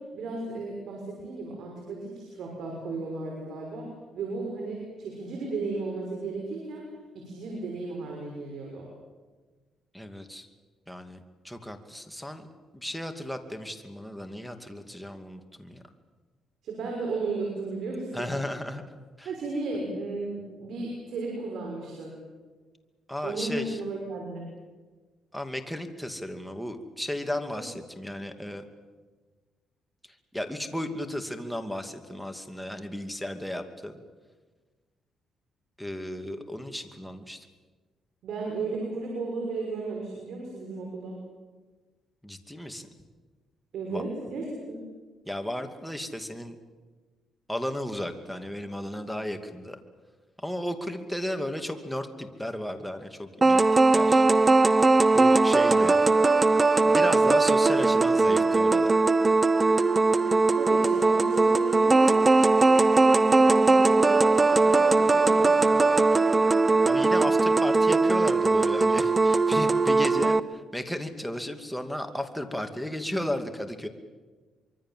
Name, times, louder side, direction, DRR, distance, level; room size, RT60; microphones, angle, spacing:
voice 1, 0.0-6.9 7.1-8.9 16.6-18.3 19.2-22.1 23.2-24.5 27.5-27.6 38.2-41.2 43.7-44.8 60.5-62.3 62.7-66.0, right 3 dB, 70° right, 0 dB, 6.3 m, -35 dB
voice 2, 9.9-10.5 10.9-11.2 11.4-12.5 12.7-15.8 18.1-18.8 19.2-19.3 23.1-23.8 25.3-28.6 30.3-34.0 35.8-37.5 42.2-42.9 43.9-44.0 45.3-46.6 47.5-49.8 50.4-53.6 53.9-54.3 55.1-56.0 56.9-59.0 66.8-73.9, left 1 dB, ahead, 6 dB, 2.5 m, -34 dB
sound 1, 53.4-70.4, right 3 dB, 25° right, 0.8 m, -20 dB
25.0 x 23.5 x 7.6 m, 1.4 s
cardioid pair, 90°, 0 cm